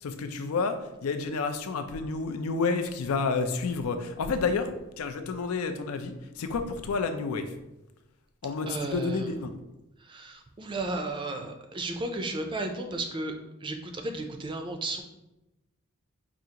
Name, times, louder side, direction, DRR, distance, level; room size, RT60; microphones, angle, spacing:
voice 1, 0.0-7.5 8.4-9.5, left 4 dB, 90° left, 8 dB, 0.4 m, -30 dB
voice 2, 8.7-9.3 10.0-13.3 13.6-15.0, right 2 dB, 25° right, 5 dB, 0.4 m, -34 dB
4.9 x 2.4 x 2.8 m, 0.95 s
head